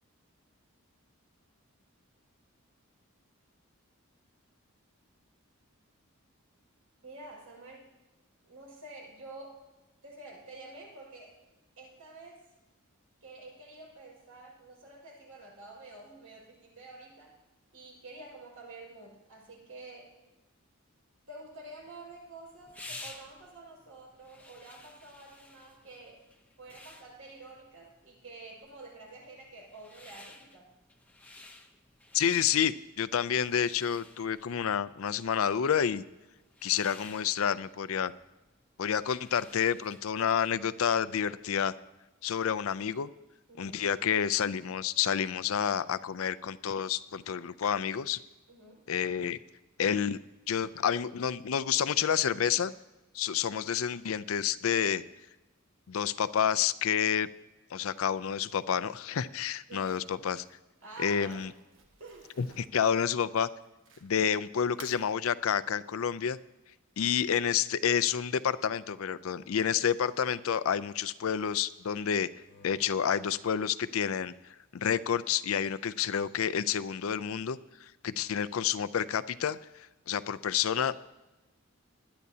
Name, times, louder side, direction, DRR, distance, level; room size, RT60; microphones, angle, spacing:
voice 1, 7.0-7.9 8.4-9.6 10.0-11.3 11.8-12.4 13.2-17.3 17.7-20.1 21.3-26.2 26.6-30.7 43.5-43.9 48.5-48.9 59.7-60.0 60.8-61.4 62.0-62.3, right 2 dB, 85° right, -3 dB, 5.1 m, -49 dB
sound 1, 21.7-40.2, left 2 dB, 5° left, 0.7 m, -53 dB
voice 2, 32.1-36.0 36.6-38.1 38.8-41.7 42.2-43.1 43.6-48.2 48.9-49.4 49.8-50.2 50.5-52.7 53.1-55.0 55.9-57.3 57.7-60.4 61.0-61.5 62.4-63.5 64.0-66.4 67.0-72.3 72.6-74.3 74.7-79.6 80.1-80.9, left 8 dB, 75° left, 14 dB, 0.4 m, -29 dB
Crumpling crinkling, 59.7-64.3 64.6-65.0, right 5 dB, 60° right, 1.2 m, -55 dB
sound 2, 72.4-74.4 75.4-76.9, left 3 dB, 55° left, 1.1 m, -61 dB
20.0 x 10.5 x 2.8 m, 1.1 s
head